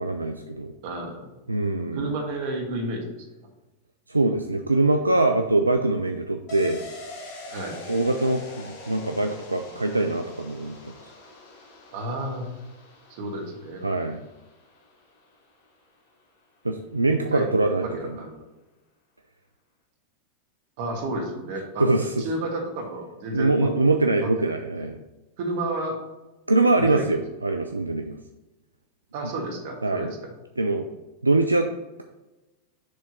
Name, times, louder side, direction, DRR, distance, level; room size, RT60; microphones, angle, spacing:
voice 1, 0.0-0.7 1.5-2.2 4.1-6.8 7.9-10.9 13.8-14.2 16.6-18.2 21.8-22.3 23.3-25.0 26.5-28.2 29.8-30.1 30.6-30.9 31.2-31.7, right 2 dB, 85° right, 4 dB, 0.3 m, -23 dB
voice 2, 0.8-1.4 1.9-3.1 7.5-7.8 11.9-12.4 13.1-13.8 17.3-17.5 17.8-18.4 20.8-21.9 22.2-23.7 24.2-24.3 24.8-24.9 25.4-26.0 26.8-27.2 29.1-30.3, right 2 dB, 50° right, 2 dB, 1.5 m, -31 dB
sound 1, 6.5-15.9 16.2-16.3, left 1 dB, 45° left, 1.3 m, -44 dB
6.7 x 3.4 x 5.3 m, 1.1 s
figure-of-eight pair, 90°, 0 cm